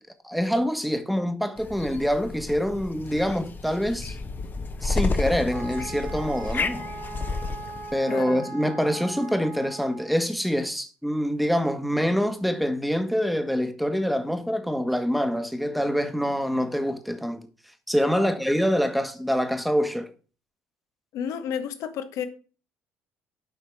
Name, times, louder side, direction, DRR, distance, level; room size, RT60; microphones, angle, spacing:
voice 1, 0.2-4.2 4.8-6.8 7.9-17.5 17.9-20.1, equal, ahead, 1.4 m, -25 dB
sound 1, 1.6-8.0, left 3 dB, 30° left, 1.0 m, -31 dB
sound 2, 5.5-10.2, right 4 dB, 75° right, 5.2 m, -39 dB
voice 2, 8.1-8.5 18.1-18.3 21.1-22.3, left 8 dB, 60° left, 1.1 m, -32 dB
9.4 x 5.8 x 4.7 m
figure-of-eight pair, 50°, 7 cm